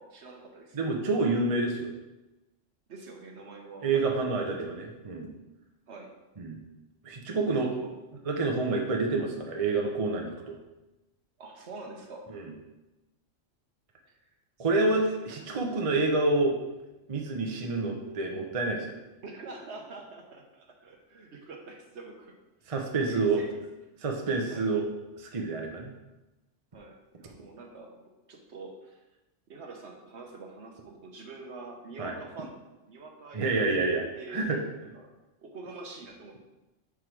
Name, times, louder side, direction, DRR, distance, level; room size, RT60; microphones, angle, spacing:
voice 1, 0.0-0.8 2.9-4.5 5.9-6.1 7.8-7.9 11.4-12.3 14.1-14.2 14.8-15.4 19.2-22.3 22.6-22.7 23.0-23.6 24.5-24.7 26.7-27.9 28.3-29.0 29.5-32.6 32.9-34.4 34.9-35.1 35.4-36.4, right 3 dB, 60° right, 2 dB, 1.2 m, -46 dB
voice 2, 0.7-1.9 3.8-5.3 6.4-6.6 7.0-7.8 8.2-10.6 12.3-12.5 14.6-16.6 17.1-18.9 22.7-23.5 24.0-24.9 25.2-25.9 32.0-32.1 33.3-34.6, right 3 dB, 30° right, 2 dB, 0.7 m, -28 dB
5.9 x 4.9 x 4.6 m, 1.0 s
omnidirectional pair, 1.3 m